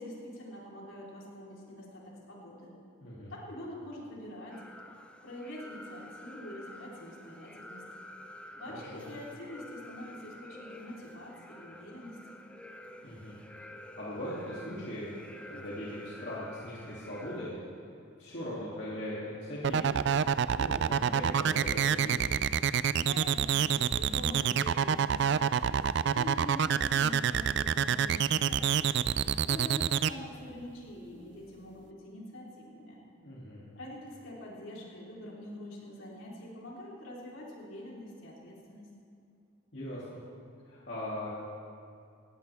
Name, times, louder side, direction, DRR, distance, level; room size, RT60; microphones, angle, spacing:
voice 1, 0.0-2.7 3.3-4.6 5.2-7.8 8.5-12.4 22.9-28.9 29.5-33.0 33.7-38.9, left 1 dB, 75° left, -5 dB, 3.9 m, -45 dB
voice 2, 3.0-3.3 8.7-9.1 13.0-13.4 14.0-15.2 15.4-17.6 18.2-20.0 20.5-22.2 33.2-33.6 39.7-40.2 40.7-41.3, left 1 dB, 55° left, -8 dB, 2.8 m, -39 dB
sound 1, 4.5-17.5, left 1 dB, 5° left, 0.6 m, -50 dB
sound 2, 19.6-30.1, right 8 dB, 55° right, 0.3 m, -27 dB
19.0 x 16.5 x 3.5 m, 2.4 s
head